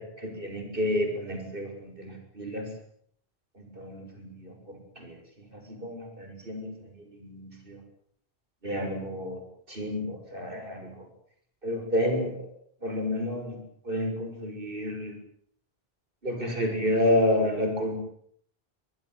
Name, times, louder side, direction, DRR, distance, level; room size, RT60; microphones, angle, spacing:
voice 1, 0.0-2.7 3.6-5.2 5.7-7.8 8.6-9.4 9.7-11.1 11.6-12.3 12.8-13.6 13.9-15.1 16.2-18.0, left 1 dB, 55° right, 5 dB, 7.3 m, -30 dB
24.5 x 19.0 x 9.4 m, 0.65 s
omnidirectional pair, 1.1 m